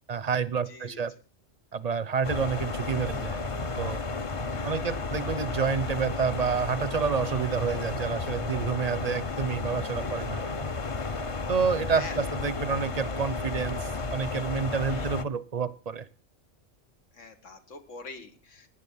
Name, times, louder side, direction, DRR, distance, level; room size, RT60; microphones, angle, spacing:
voice 1, 0.1-1.1 1.7-3.4 3.8-4.0 4.6-10.4 11.5-16.1, right 6 dB, 40° right, 18 dB, 0.7 m, -29 dB
voice 2, 0.7-1.0 4.3-5.1 7.4-7.5 10.0-10.3 11.9-12.3 14.7-15.1 17.1-18.7, left 3 dB, 85° left, 7 dB, 2.1 m, -45 dB
sound 1, 2.2-15.2, left 3 dB, 30° left, 0.7 m, -33 dB
16.5 x 10.5 x 5.6 m, 0.37 s
omnidirectional pair, 1.3 m